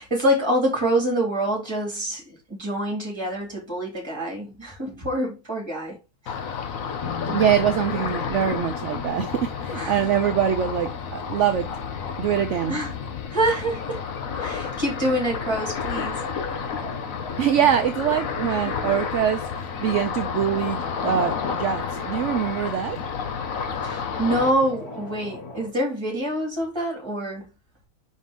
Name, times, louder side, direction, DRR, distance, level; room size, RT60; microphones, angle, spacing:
voice 1, 0.0-6.0 6.2-6.3 9.7-10.0 12.7-13.0 13.3-14.0 14.4-16.2 23.8-27.5, right 1 dB, 15° right, 2.9 m, -26 dB
Ocean, 6.3-24.5, left 6 dB, 70° left, 1.2 m, -31 dB
sound 1, 7.0-14.4 16.1-21.6 23.4-25.7, left 5 dB, 90° left, 3.2 m, -40 dB
voice 2, 7.3-11.7 12.2-12.8 17.4-23.0, right 9 dB, 65° right, 0.9 m, -24 dB
5.4 x 5.0 x 3.8 m
omnidirectional pair, 1.5 m